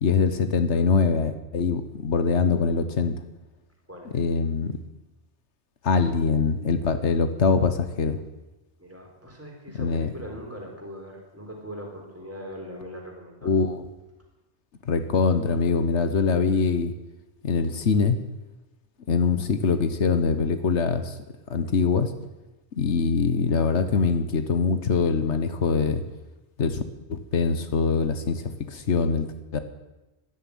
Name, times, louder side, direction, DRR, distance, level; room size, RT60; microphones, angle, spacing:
voice 1, 0.0-3.2 4.1-4.8 5.8-8.2 9.8-10.1 13.4-13.8 14.8-16.9 17.4-18.2 19.1-21.2 21.5-22.1 22.7-26.0 26.6-26.8 27.1-29.6, left 5 dB, 85° left, 10 dB, 1.5 m, -23 dB
voice 2, 3.9-4.2 8.8-13.5, equal, 10° right, 0 dB, 3.9 m, -40 dB
13.5 x 11.0 x 9.4 m, 1.0 s
omnidirectional pair, 1.1 m